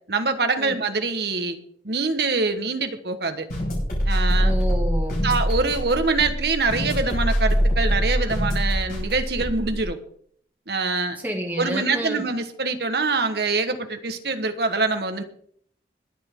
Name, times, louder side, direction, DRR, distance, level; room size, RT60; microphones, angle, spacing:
voice 1, 0.1-1.6 1.8-3.5 4.0-4.5 5.2-10.0 10.7-11.2 11.6-15.2, right 3 dB, 70° right, 7 dB, 1.4 m, -24 dB
sound 1, 3.5-9.8, equal, 55° left, 6.4 m, -23 dB
voice 2, 4.4-5.2 11.2-12.2, equal, 10° right, 0 dB, 2.3 m, -29 dB
21.5 x 8.3 x 3.8 m, 0.63 s
head